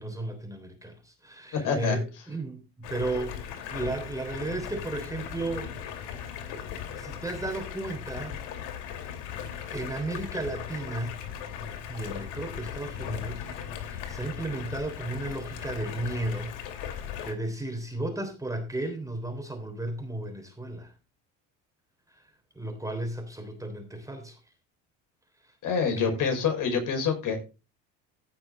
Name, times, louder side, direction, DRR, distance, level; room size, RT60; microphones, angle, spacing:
voice 1, 0.0-5.7 6.9-8.4 9.7-11.2 11.9-13.5 13.7-16.5 16.9-20.9 22.1-22.2 22.5-24.4 26.0-26.2, right 2 dB, 10° right, 3.2 m, -34 dB
voice 2, 1.5-2.0 25.6-27.4, left 6 dB, 55° left, 5.4 m, -26 dB
Stream, 2.8-17.3, left 8 dB, 80° left, 2.7 m, -38 dB
16.0 x 6.1 x 3.9 m
supercardioid pair, 100°, 37 cm